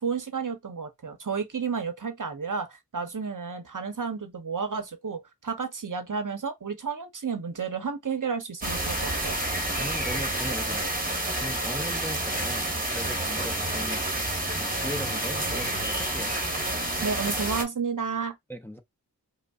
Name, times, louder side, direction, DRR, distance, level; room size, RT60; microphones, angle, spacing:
voice 1, 0.0-9.4 17.0-18.4, right 5 dB, 50° right, 0.7 m, -31 dB
sound 1, 8.6-17.6, right 1 dB, 20° right, 1.0 m, -29 dB
voice 2, 9.8-14.0 14.5-16.3 18.5-18.8, equal, 5° left, 0.5 m, -38 dB
5.1 x 2.0 x 2.3 m
wide cardioid pair, 40°, 39 cm